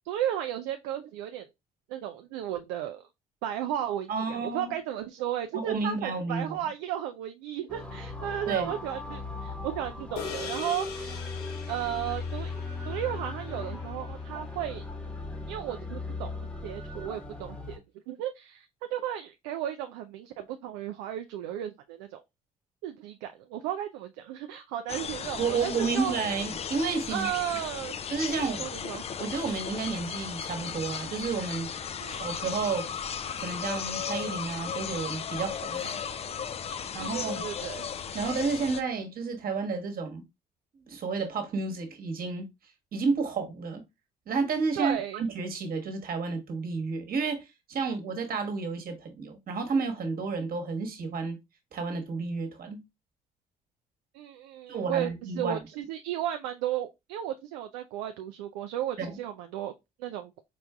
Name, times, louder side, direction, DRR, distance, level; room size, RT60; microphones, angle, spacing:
voice 1, 0.1-1.5 1.9-3.0 3.4-11.2 11.7-12.5 12.9-14.8 15.5-16.3 16.6-17.8 18.1-22.2 22.8-26.1 27.1-28.0 28.5-29.0 32.0-32.3 36.6-37.9 44.7-45.3 47.9-48.0 54.1-59.7 60.0-60.3, right 11 dB, 65° right, 0.4 m, -34 dB
voice 2, 4.1-4.7 5.5-6.6 8.5-8.7 25.4-27.3 28.1-28.7 29.2-31.7 32.1-32.9 33.4-36.0 36.9-37.4 38.1-40.2 40.9-42.4 42.9-43.8 44.3-51.4 51.7-52.8 54.7-55.6 59.0-59.2, right 4 dB, 45° right, 1.2 m, -31 dB
sound 1, 7.7-17.8, left 3 dB, 5° left, 1.1 m, -38 dB
sound 2, 10.2-14.7, left 7 dB, 80° left, 0.8 m, -42 dB
sound 3, 24.9-38.8, left 7 dB, 30° left, 0.4 m, -36 dB
4.4 x 4.0 x 2.3 m
figure-of-eight pair, 50°, 20 cm